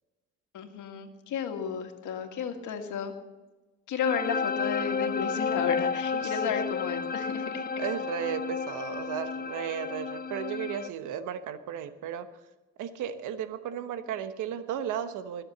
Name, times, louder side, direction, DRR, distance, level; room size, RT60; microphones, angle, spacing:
voice 1, 0.5-3.1 3.9-7.7, left 7 dB, 80° left, 5 dB, 1.9 m, -33 dB
sound 1, 4.0-10.9, left 5 dB, 30° left, 0.7 m, -32 dB
voice 2, 6.1-6.5 7.4-12.3 12.8-15.4, right 9 dB, 90° right, 11 dB, 1.1 m, -35 dB
20.5 x 7.2 x 7.1 m, 1.2 s
cardioid pair, 90°, 30 cm